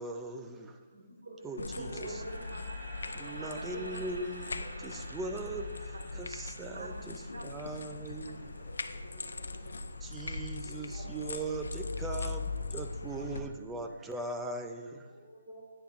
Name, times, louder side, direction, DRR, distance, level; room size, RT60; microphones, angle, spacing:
voice 1, 0.0-0.8 1.4-2.2 3.1-8.5 10.0-15.1, right 2 dB, 5° right, 5 dB, 0.3 m, -40 dB
voice 2, 0.9-4.0 5.9-6.2 6.7-8.4, right 2 dB, 65° right, 1 dB, 1.7 m, -47 dB
sound 1, 1.4-11.5, right 1 dB, 40° right, 1.8 m, -51 dB
sound 2, 1.6-13.4, left 3 dB, 80° left, 0.6 m, -40 dB
voice 3, 1.8-2.3 3.1-3.6 8.7-9.7 10.6-11.3 15.1-15.6, right 1 dB, 25° right, -3 dB, 1.7 m, -51 dB
10.0 x 10.0 x 2.5 m, 1.4 s
hypercardioid pair, 175°, 0 cm